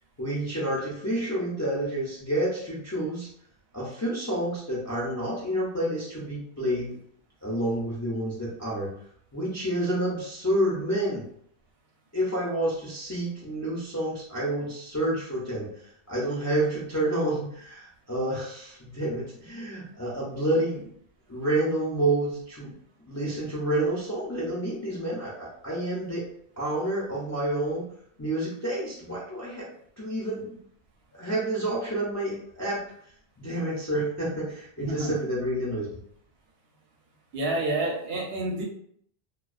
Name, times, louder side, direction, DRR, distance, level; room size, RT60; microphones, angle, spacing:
voice 1, 0.2-3.3 3.7-7.0 7.4-8.9 9.3-11.2 12.1-15.7 16.1-20.9 21.3-22.7 23.1-26.3 26.6-27.9 28.2-29.7 30.0-30.5 31.1-32.8 33.4-35.9, right 1 dB, 25° left, -6 dB, 0.3 m, -29 dB
voice 2, 34.8-35.1 37.3-38.6, right 2 dB, 70° right, 0 dB, 0.8 m, -28 dB
2.3 x 2.2 x 2.4 m, 0.66 s
omnidirectional pair, 1.1 m